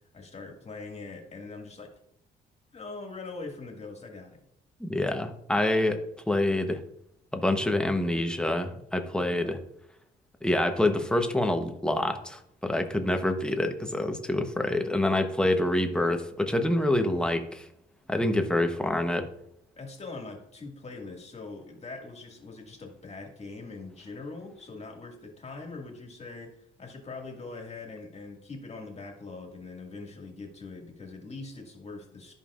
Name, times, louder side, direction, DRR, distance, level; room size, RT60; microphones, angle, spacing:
voice 1, 0.1-1.9 2.7-4.4 9.3-9.5 19.8-32.3, left 3 dB, 35° left, 2 dB, 2.0 m, -42 dB
voice 2, 4.8-6.8 7.3-9.6 10.4-17.7 18.1-19.3, left 1 dB, 5° left, 5 dB, 0.9 m, -26 dB
13.5 x 5.3 x 2.5 m, 0.75 s
cardioid pair, 90°, 20 cm